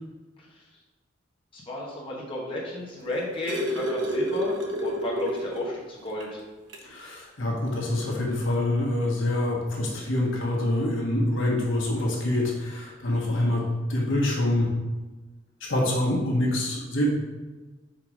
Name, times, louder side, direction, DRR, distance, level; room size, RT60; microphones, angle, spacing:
voice 1, 1.5-6.4 13.1-13.6, left 1 dB, 25° left, -5 dB, 1.4 m, -33 dB
sound 1, 2.9-5.8 6.2-6.3 6.7-6.9 8.0-8.1, equal, 65° right, 1.0 m, -29 dB
voice 2, 6.8-13.6 13.9-14.7 15.7-17.1, left 1 dB, 70° left, -3 dB, 1.4 m, -25 dB
5.1 x 4.6 x 5.1 m, 1.2 s
head